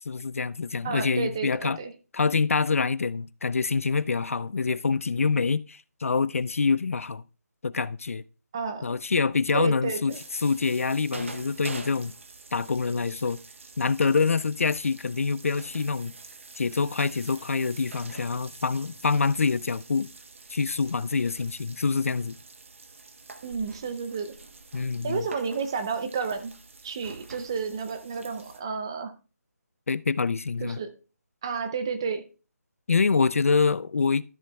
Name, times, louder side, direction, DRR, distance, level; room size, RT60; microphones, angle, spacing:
voice 1, 0.1-1.8 2.1-7.2 7.6-8.2 8.8-12.1 12.5-13.4 13.8-16.1 16.6-20.1 20.5-22.4 24.7-25.2 29.9-30.8 32.9-34.2, left 4 dB, 55° left, 0.4 m, -26 dB
voice 2, 0.8-1.9 8.5-9.0 9.5-10.2 23.4-24.3 25.0-26.5 26.8-29.1 30.6-30.9 31.4-32.2, right 5 dB, 15° right, 0.5 m, -31 dB
sound 1, 10.1-28.6, right 3 dB, 50° right, 1.0 m, -46 dB
13.0 x 7.3 x 2.3 m
figure-of-eight pair, 170°, 9 cm